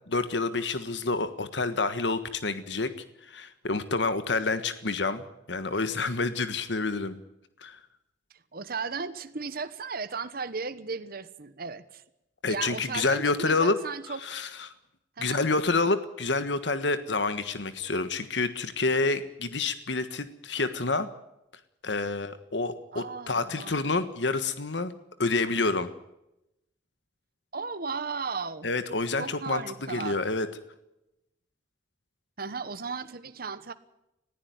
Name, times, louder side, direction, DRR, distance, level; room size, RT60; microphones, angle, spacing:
voice 1, 0.1-2.9 3.2-7.2 7.6-7.8 12.4-13.8 14.2-14.7 15.2-21.1 21.8-24.9 25.2-25.9 28.6-30.5, left 3 dB, 75° left, 11 dB, 1.5 m, -28 dB
voice 2, 8.5-12.0 12.4-14.2 15.2-15.5 22.9-23.9 27.5-28.7 29.2-30.2 32.4-33.7, right 4 dB, 55° right, 12 dB, 1.2 m, -35 dB
20.5 x 15.0 x 9.5 m, 0.87 s
head